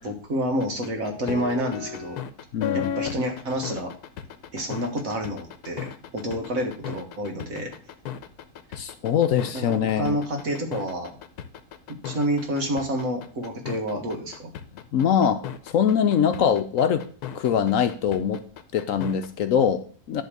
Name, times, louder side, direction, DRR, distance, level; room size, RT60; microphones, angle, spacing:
voice 1, 0.0-2.2 2.7-3.9 4.5-7.7 9.5-11.2 11.9-14.5, equal, 60° right, 3 dB, 1.9 m, -29 dB
sound 1, 0.6-19.3, left 9 dB, 90° left, 1.2 m, -35 dB
voice 2, 2.5-2.9 8.8-10.2 14.9-17.0 17.3-18.4 18.7-20.2, left 8 dB, 65° left, 9 dB, 0.9 m, -23 dB
11.0 x 3.6 x 6.6 m, 0.43 s
omnidirectional pair, 1.6 m